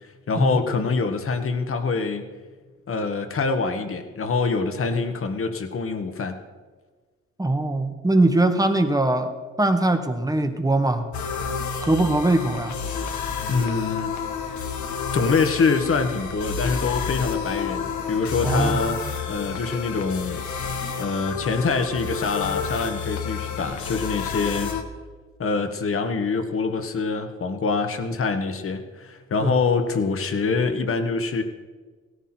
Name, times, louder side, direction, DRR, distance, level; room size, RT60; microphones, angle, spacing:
voice 1, 0.3-2.3 2.9-6.4 13.5-14.1 15.1-20.4 21.0-24.7 25.4-31.4, left 4 dB, 45° left, 8 dB, 1.7 m, -25 dB
voice 2, 7.4-9.3 9.6-11.0 11.8-12.8 18.4-18.8 29.4-29.6, right 2 dB, 10° right, 7 dB, 1.5 m, -21 dB
sound 1, 11.1-24.8, left 6 dB, 70° left, 1.6 m, -30 dB
16.5 x 14.0 x 4.5 m, 1.4 s
cardioid pair, 90°, 30 cm